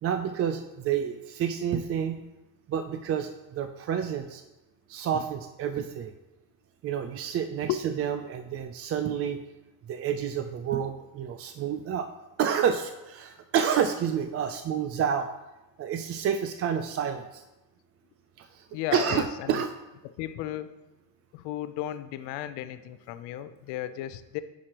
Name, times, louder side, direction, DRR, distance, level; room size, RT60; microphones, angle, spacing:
voice 1, 0.0-2.2 2.7-4.4 4.9-6.1 6.8-9.4 9.9-12.1 12.4-15.3 15.8-17.4 18.4-18.7 18.9-19.7 23.3-23.5, right 8 dB, 40° right, 8 dB, 0.4 m, -29 dB
voice 2, 18.7-19.7 20.2-20.7 21.3-24.4, left 13 dB, 80° left, 12 dB, 0.6 m, -34 dB
10.0 x 4.9 x 2.9 m, 0.99 s
cardioid pair, 105°, 39 cm